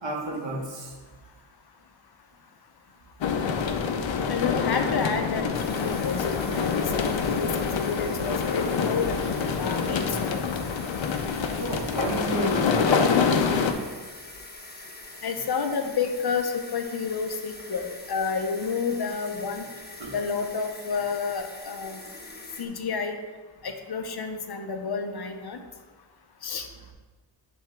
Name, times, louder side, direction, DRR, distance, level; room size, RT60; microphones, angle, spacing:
voice 1, 0.0-0.9 11.6-13.4 20.0-20.1, right 1 dB, 75° right, -1 dB, 1.5 m, -31 dB
sound 1, 3.2-13.7, left 6 dB, 85° left, 0.7 m, -26 dB
voice 2, 4.3-9.1 9.6-10.5 15.2-19.6 20.1-22.0 22.6-23.2 23.6-25.6 26.4-26.7, left 5 dB, 55° left, 6 dB, 0.8 m, -30 dB
sound 2, 5.5-22.7, left 2 dB, 20° left, 1.0 m, -44 dB
10.5 x 3.5 x 3.5 m, 1.4 s
cardioid pair, 75°, 45 cm